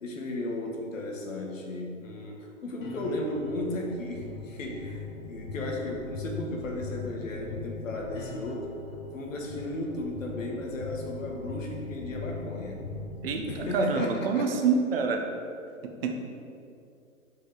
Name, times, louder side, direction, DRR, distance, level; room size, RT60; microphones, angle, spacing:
voice 1, 0.0-8.8 9.1-12.9 13.5-14.6, left 1 dB, 65° left, 0 dB, 1.4 m, -35 dB
sound 1, 2.8-13.5, left 4 dB, 35° left, 1.2 m, -40 dB
voice 2, 13.2-15.2 15.8-16.1, right 5 dB, 45° right, 3 dB, 0.8 m, -27 dB
6.1 x 5.0 x 4.7 m, 2.6 s
figure-of-eight pair, 120°, 42 cm